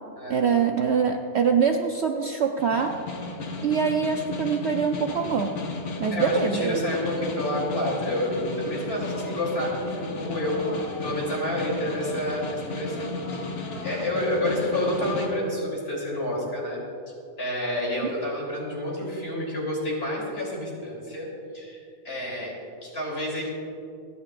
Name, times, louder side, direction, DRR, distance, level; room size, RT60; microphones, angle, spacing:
voice 1, 0.3-3.0 3.6-5.6 6.0-6.8 18.0-18.1, right 6 dB, 60° right, 4 dB, 0.8 m, -24 dB
Snare drum, 2.6-15.3, left 3 dB, 80° left, 1.8 m, -35 dB
voice 2, 6.1-10.7 11.0-13.5 13.8-16.8 17.4-22.5 22.8-23.5, left 1 dB, 40° left, -4 dB, 3.6 m, -29 dB
sound 1, 7.8-15.0, left 1 dB, 10° left, 1.2 m, -40 dB
28.5 x 10.5 x 2.5 m, 2.6 s
omnidirectional pair, 1.5 m